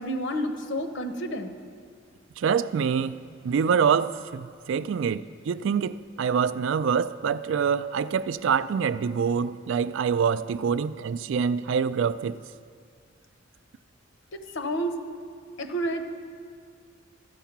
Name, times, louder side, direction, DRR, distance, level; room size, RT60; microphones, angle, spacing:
voice 1, 0.0-1.5 14.5-15.0 15.6-16.0, right 1 dB, 60° left, 0.9 m, -29 dB
voice 2, 2.4-3.2 3.4-12.4, right 6 dB, 65° right, 0.3 m, -25 dB
13.5 x 8.1 x 5.8 m
head